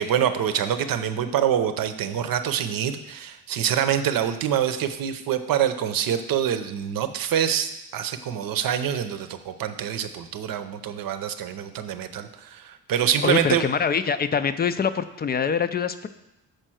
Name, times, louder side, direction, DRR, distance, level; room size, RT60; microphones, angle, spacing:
voice 1, 0.0-13.6, right 9 dB, 65° right, 10 dB, 0.7 m, -25 dB
voice 2, 13.2-16.1, left 6 dB, 25° left, 11 dB, 0.4 m, -24 dB
6.6 x 4.4 x 6.2 m, 0.91 s
cardioid pair, 95°, 38 cm